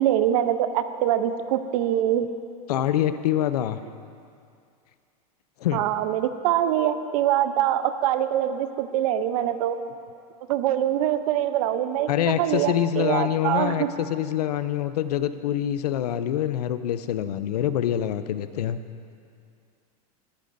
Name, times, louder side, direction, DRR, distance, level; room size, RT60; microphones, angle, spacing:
voice 1, 0.0-2.3 5.7-9.8 10.5-12.1 12.4-13.9, right 11 dB, 65° right, 10 dB, 0.7 m, -24 dB
voice 2, 2.7-3.8 5.6-5.8 12.1-18.8, left 11 dB, 90° left, 12 dB, 0.5 m, -25 dB
18.5 x 10.5 x 2.6 m, 2.4 s
supercardioid pair, 125°, 20 cm